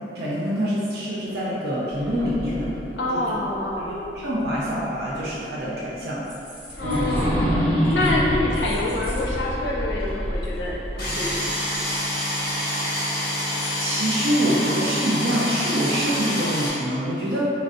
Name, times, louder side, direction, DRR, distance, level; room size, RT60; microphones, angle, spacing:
voice 1, 0.1-2.8 3.1-3.4 3.8-6.2 6.8-7.1 13.8-17.4, equal, 60° right, -7 dB, 0.5 m, -25 dB
sound 1, 1.8-4.8 5.2-5.3 6.7-11.8, equal, 15° left, 1.0 m, -27 dB
voice 2, 2.9-3.9 6.8-7.7 7.9-11.6, left 1 dB, 85° left, -3 dB, 0.5 m, -27 dB
sound 2, 5.5-5.8 6.0-7.4 7.8-8.2 8.5-9.2 9.5-9.6 10.0-10.1 10.4-10.7 11.0-13.1 13.5-14.0 14.4-14.6 14.8-14.9, equal, 30° right, 0.8 m, -44 dB
sound 3, 11.0-16.7, equal, 60° left, 1.1 m, -26 dB
3.1 x 2.5 x 2.5 m, 2.7 s
head